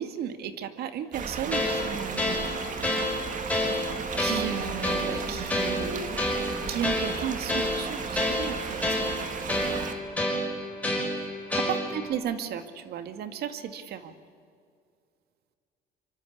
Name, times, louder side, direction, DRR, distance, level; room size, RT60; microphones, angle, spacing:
voice 1, 0.0-2.4 4.2-6.1 6.7-8.8 11.5-14.1, right 9 dB, 70° right, 9 dB, 2.1 m, -34 dB
sound 1, 1.1-9.9, right 6 dB, 50° right, 2.5 m, -35 dB
sound 2, 1.5-12.1, left 1 dB, 10° left, 5.7 m, -29 dB
25.5 x 24.5 x 8.5 m, 2.2 s
cardioid pair, 110°, 17 cm